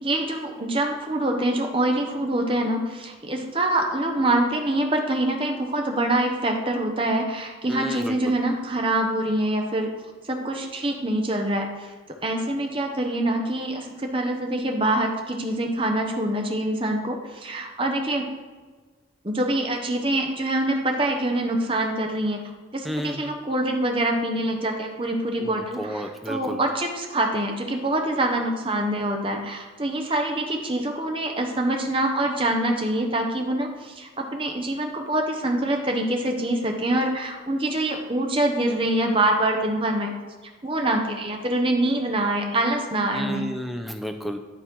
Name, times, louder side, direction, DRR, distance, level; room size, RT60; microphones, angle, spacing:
voice 1, 0.0-9.9 10.3-11.9 12.2-18.3 19.2-22.4 22.7-40.1 40.6-43.4, right 1 dB, 25° right, 2 dB, 0.9 m, -25 dB
voice 2, 7.7-8.3 22.8-23.3 25.4-26.6 43.1-44.4, equal, ahead, 5 dB, 0.5 m, -32 dB
11.0 x 4.2 x 4.6 m, 1.4 s
head